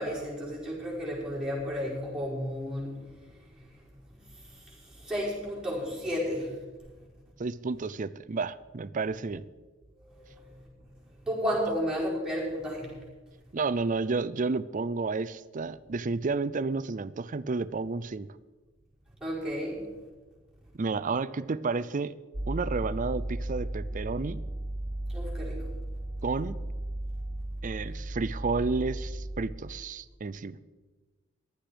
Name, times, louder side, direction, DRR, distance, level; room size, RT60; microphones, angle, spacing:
voice 1, 0.0-2.9 4.4-6.5 10.0-10.5 11.2-12.9 19.2-19.8 25.1-25.6, equal, 5° right, -6 dB, 4.9 m, -32 dB
voice 2, 7.4-9.4 13.5-18.3 20.8-22.1 22.5-24.4 26.2-26.6 27.6-30.6, right 4 dB, 40° right, 17 dB, 0.5 m, -31 dB
sound 1, 22.3-29.4, right 1 dB, 20° right, 2.2 m, -35 dB
15.0 x 11.5 x 5.0 m, 1.3 s
head